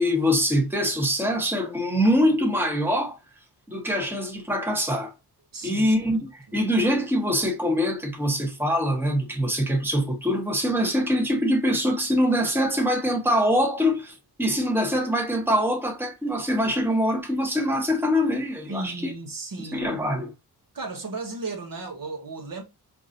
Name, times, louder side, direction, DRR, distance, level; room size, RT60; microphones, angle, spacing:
voice 1, 0.0-3.2 3.7-5.1 5.6-19.1 19.6-20.3, equal, 5° right, 1.1 m, -24 dB
voice 2, 5.5-6.0 6.5-6.6 18.7-20.0 20.7-22.6, right 3 dB, 55° right, 1.1 m, -35 dB
4.6 x 2.6 x 2.7 m
cardioid pair, 80°, 40 cm